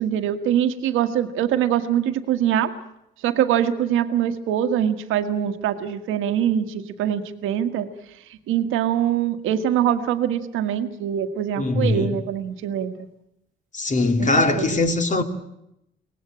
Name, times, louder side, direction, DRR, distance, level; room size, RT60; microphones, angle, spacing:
voice 1, 0.0-2.7 3.2-7.9 8.5-12.9 14.2-14.8, right 10 dB, 90° right, 1.6 m, -23 dB
voice 2, 11.6-12.2 13.7-15.2, left 2 dB, 40° left, 2.7 m, -21 dB
24.0 x 18.5 x 8.8 m
cardioid pair, 90°, 20 cm